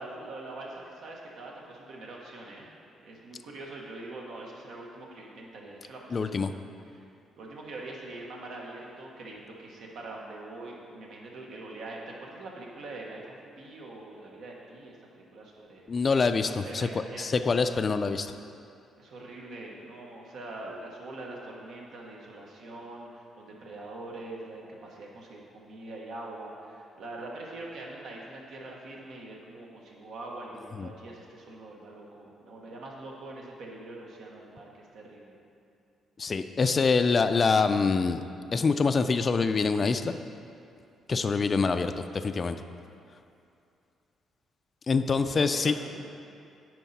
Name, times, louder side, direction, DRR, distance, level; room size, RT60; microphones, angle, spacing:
voice 1, 0.0-2.7 3.0-7.0 7.4-15.9 16.3-17.3 19.0-35.4 45.2-46.1, right 2 dB, 75° right, -2 dB, 1.3 m, -43 dB
voice 2, 6.1-6.5 15.9-16.9 17.2-18.3 30.8-30.9 36.2-38.2 38.5-40.1 41.1-42.6 44.9-45.7, left 4 dB, 40° left, 9 dB, 0.3 m, -25 dB
9.3 x 4.6 x 4.2 m, 2.6 s
cardioid pair, 90°, 0 cm